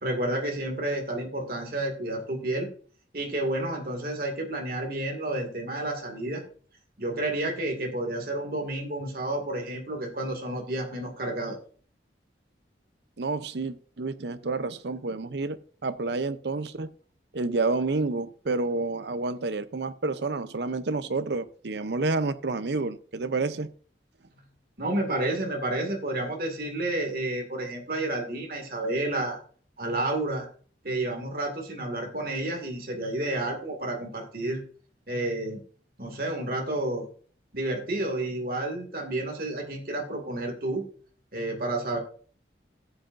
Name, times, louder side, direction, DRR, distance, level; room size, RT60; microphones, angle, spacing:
voice 1, 0.0-2.7 3.1-6.4 7.0-11.6 24.8-29.4 29.8-30.5 30.8-34.6 35.1-35.6 36.0-37.1 37.5-40.8 41.3-42.0, right 1 dB, 50° right, 2 dB, 2.1 m, -30 dB
voice 2, 13.2-15.6 15.8-16.9 17.3-23.7, right 3 dB, 65° right, 13 dB, 0.6 m, -29 dB
14.0 x 7.9 x 2.6 m, 0.43 s
head